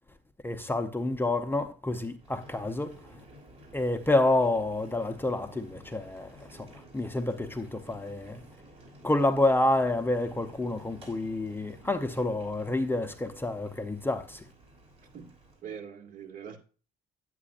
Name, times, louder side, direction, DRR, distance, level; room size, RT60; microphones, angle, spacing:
voice 1, 0.4-3.0 3.7-6.7 6.9-8.4 9.0-14.4, left 2 dB, 10° left, 0.7 m, -28 dB
Boiling, 2.1-15.6, right 1 dB, 35° right, 5.1 m, -53 dB
voice 2, 15.6-16.6, right 7 dB, 55° right, 2.0 m, -42 dB
9.9 x 8.5 x 2.5 m
cardioid pair, 110°, 17 cm